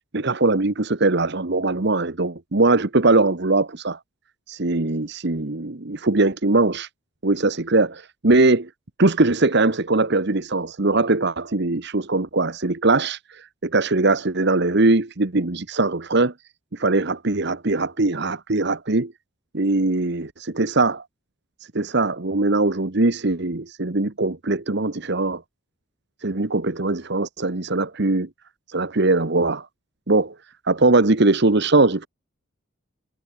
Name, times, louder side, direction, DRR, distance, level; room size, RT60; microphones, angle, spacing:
voice 1, 0.1-4.0 4.5-6.9 7.2-8.7 9.0-16.3 16.7-19.1 19.5-21.0 21.7-25.4 26.2-28.3 28.7-29.7 30.1-30.3 30.7-32.1, right 2 dB, 55° right, 1.2 m, -21 dB
head